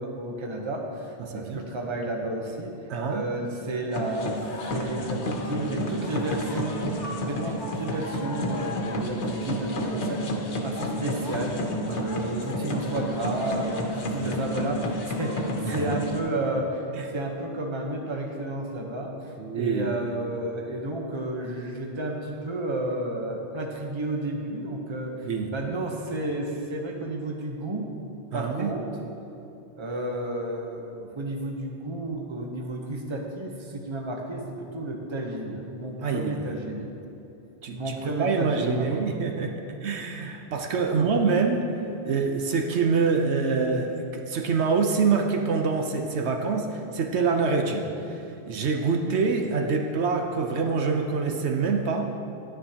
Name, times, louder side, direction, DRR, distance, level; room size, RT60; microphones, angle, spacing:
voice 1, 0.0-2.7 3.1-4.3 4.7-6.8 7.1-10.2 10.6-11.6 11.9-16.8 17.1-27.9 28.3-28.9 29.8-34.5 34.7-36.9 37.7-39.0 40.7-41.2, right 1 dB, 30° right, 1 dB, 0.9 m, -32 dB
voice 2, 1.2-1.6 2.9-3.3 11.9-12.1 14.1-14.4 15.6-15.9 16.9-17.1 19.4-19.9 25.2-25.5 28.3-28.7 36.0-36.5 37.6-39.5 39.8-41.6 42.0-48.1 48.5-52.1, right 4 dB, 80° right, 3 dB, 1.0 m, -26 dB
sound 1, 3.9-16.2, equal, 90° left, 1.2 m, -31 dB
11.0 x 9.6 x 2.9 m, 2.8 s
omnidirectional pair, 1.1 m